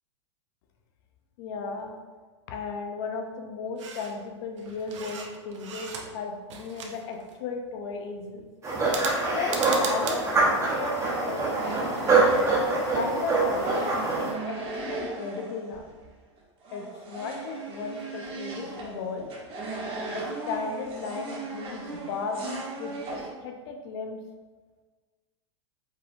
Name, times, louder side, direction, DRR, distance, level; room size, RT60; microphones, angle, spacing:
voice 1, 1.4-1.9 2.5-8.4 9.3-12.3 12.9-15.8 16.7-19.3 20.1-24.2, left 4 dB, 60° left, 3 dB, 0.8 m, -35 dB
sound 1, 3.8-4.2 4.6-6.2 6.5-7.4 8.8-10.2, right 5 dB, 75° right, 0.7 m, -37 dB
sound 2, 8.6-14.3, right 3 dB, 20° right, 1.3 m, -24 dB
sound 3, 11.3-13.0 13.6-16.1 16.4-23.3, right 3 dB, 35° right, 1.4 m, -37 dB
5.2 x 3.7 x 2.7 m, 1.4 s
hypercardioid pair, 115°, 16 cm